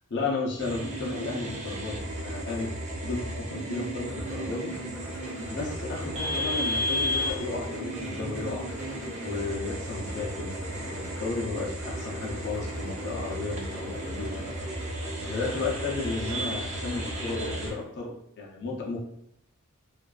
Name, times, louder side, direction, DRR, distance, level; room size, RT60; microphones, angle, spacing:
voice 1, 0.1-2.7 3.0-4.7 5.5-8.7 9.2-14.5 15.3-19.0, left 3 dB, 50° left, -2 dB, 0.5 m, -33 dB
sound 1, 0.6-17.7, equal, 35° right, 0.5 m, -34 dB
sound 2, 4.1-17.8, left 1 dB, 10° right, 1.3 m, -44 dB
2.5 x 2.3 x 2.2 m, 0.79 s
head